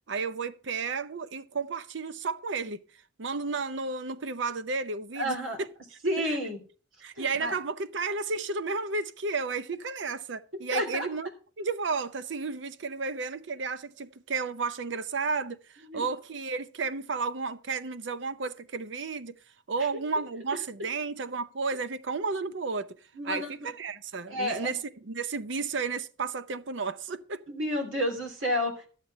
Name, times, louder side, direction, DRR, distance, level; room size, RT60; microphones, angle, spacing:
voice 1, 0.1-2.8 3.2-5.4 6.2-6.4 7.0-11.3 11.6-19.4 19.7-23.0 23.2-27.4, right 4 dB, 65° right, 0.7 m, -32 dB
voice 2, 5.2-5.6 6.0-6.6 7.2-7.5 10.7-11.1 15.9-16.0 23.1-23.7 24.3-24.8 27.5-28.9, equal, 90° right, 3.2 m, -30 dB
12.5 x 7.5 x 5.5 m
head